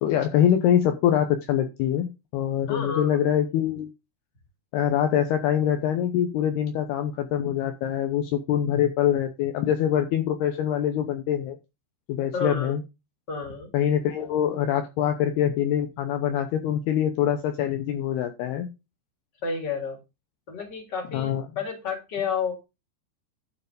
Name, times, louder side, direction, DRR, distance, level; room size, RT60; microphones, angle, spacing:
voice 1, 0.0-3.9 4.7-11.6 12.1-12.8 13.7-18.7 21.1-21.5, left 10 dB, 75° left, 7 dB, 2.7 m, -24 dB
voice 2, 2.7-3.2 12.3-12.7 13.3-13.7 19.4-20.0 20.5-22.6, left 5 dB, 30° left, 2 dB, 2.8 m, -31 dB
12.0 x 4.7 x 5.1 m, 0.26 s
omnidirectional pair, 5.1 m